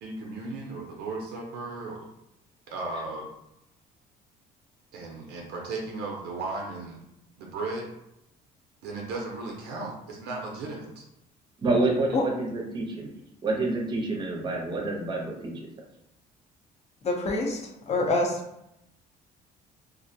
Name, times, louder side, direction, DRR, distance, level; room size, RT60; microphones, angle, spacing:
voice 1, 0.0-2.1 2.7-3.3 4.9-7.0 7.4-7.9 8.8-11.1 12.1-12.2, right 3 dB, 80° right, 0 dB, 0.5 m, -35 dB
voice 2, 11.6-13.1 13.4-15.7, right 2 dB, 25° right, 0 dB, 0.6 m, -28 dB
voice 3, 17.0-17.6 17.9-18.4, left 2 dB, 40° left, 0 dB, 0.6 m, -25 dB
2.5 x 2.1 x 2.6 m, 0.83 s
cardioid pair, 110°, 17 cm